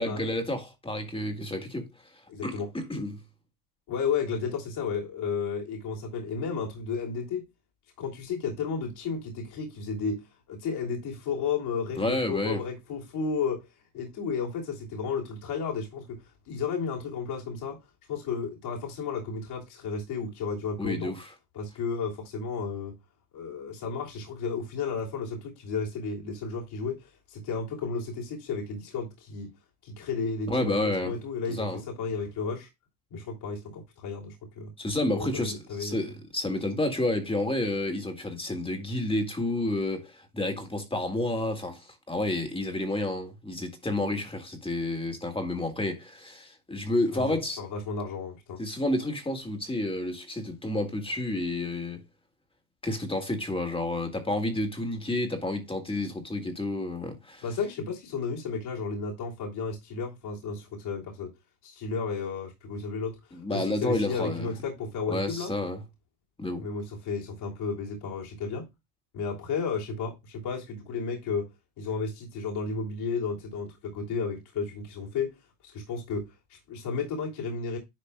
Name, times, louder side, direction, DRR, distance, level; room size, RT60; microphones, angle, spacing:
voice 1, 0.0-1.9 2.4-3.2 12.0-12.6 20.8-21.3 30.5-31.1 31.5-31.8 34.8-47.6 48.6-52.0 52.8-57.4 63.3-64.5 65.1-65.8 66.4-66.7, left 1 dB, 10° left, 1.9 m, -30 dB
voice 2, 2.3-2.7 3.9-7.4 8.0-13.7 13.9-17.8 18.1-21.1 21.5-23.0 23.3-29.5 29.8-32.7 33.1-34.7 35.1-36.1 47.1-48.6 57.4-61.3 61.6-63.2 63.5-65.5 66.6-68.7 69.1-71.5 71.8-75.4 75.7-77.8, left 5 dB, 60° left, 3.0 m, -33 dB
10.5 x 5.0 x 2.3 m
supercardioid pair, 95°, 44 cm